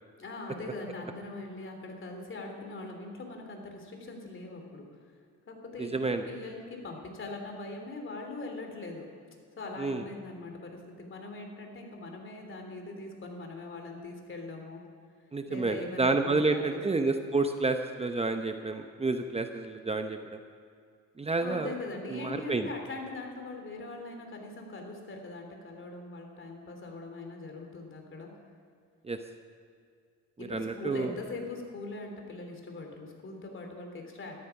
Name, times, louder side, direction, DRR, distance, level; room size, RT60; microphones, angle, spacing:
voice 1, 0.2-4.8 5.5-9.1 9.6-14.8 15.5-16.8 21.4-28.3 30.4-34.4, left 2 dB, 40° left, 3 dB, 3.2 m, -41 dB
voice 2, 5.8-6.2 9.8-10.0 15.3-20.4 21.2-21.7 22.1-22.7 29.0-29.2 30.4-31.1, right 3 dB, 20° right, 6 dB, 0.8 m, -29 dB
13.5 x 13.0 x 5.9 m, 2.3 s
cardioid pair, 90°, 30 cm